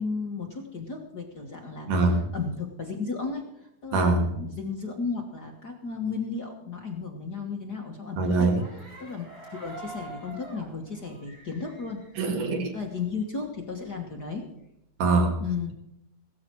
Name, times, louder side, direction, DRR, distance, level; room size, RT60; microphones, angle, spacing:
voice 1, 0.0-8.5 9.0-12.0 12.7-14.5 15.4-15.7, left 4 dB, 45° left, 1 dB, 1.4 m, -34 dB
voice 2, 1.9-2.2 3.9-4.3 8.2-8.6 12.2-12.7 15.0-15.4, right 3 dB, 85° right, 3 dB, 3.7 m, -23 dB
sound 1, 8.5-13.1 13.5-14.5, right 1 dB, 30° right, 5.4 m, -46 dB
16.5 x 13.5 x 4.6 m, 0.80 s
omnidirectional pair, 3.6 m